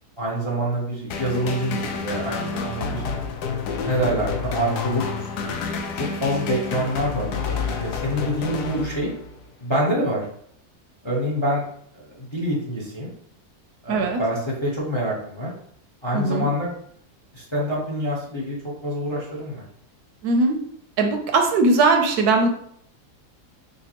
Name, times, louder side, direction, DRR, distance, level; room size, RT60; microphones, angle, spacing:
voice 1, 0.2-3.0 3.8-5.6 5.9-9.1 9.6-10.2 11.0-11.6 11.9-13.1 13.8-15.5 16.0-16.7 17.3-18.6 18.8-19.6, equal, 30° left, -5 dB, 0.6 m, -26 dB
sound 1, 1.1-9.4, left 5 dB, 80° left, 1.1 m, -29 dB
voice 2, 13.9-14.2 16.1-16.5 20.2-20.6 21.0-22.5, right 3 dB, 75° right, 4 dB, 1.1 m, -19 dB
5.1 x 2.2 x 2.9 m, 0.66 s
omnidirectional pair, 1.7 m